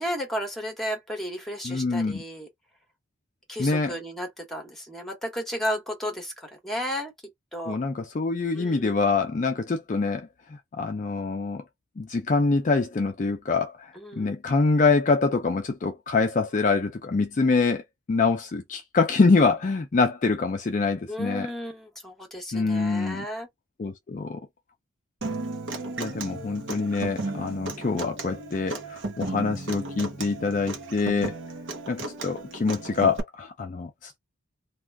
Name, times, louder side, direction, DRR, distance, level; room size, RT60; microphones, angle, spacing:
voice 1, 0.0-2.5 3.5-7.1 7.5-7.8 8.6-8.9 14.0-14.3 21.1-23.5, equal, ahead, 1.0 m, -33 dB
voice 2, 1.6-2.2 3.6-3.9 7.7-11.6 12.0-17.8 18.1-21.5 22.5-23.3 23.8-24.4 26.0-31.4 31.9-34.2, left 4 dB, 40° left, 0.4 m, -25 dB
Human voice / Acoustic guitar, 25.2-33.2, right 2 dB, 65° right, 0.8 m, -35 dB
2.4 x 2.4 x 3.3 m
head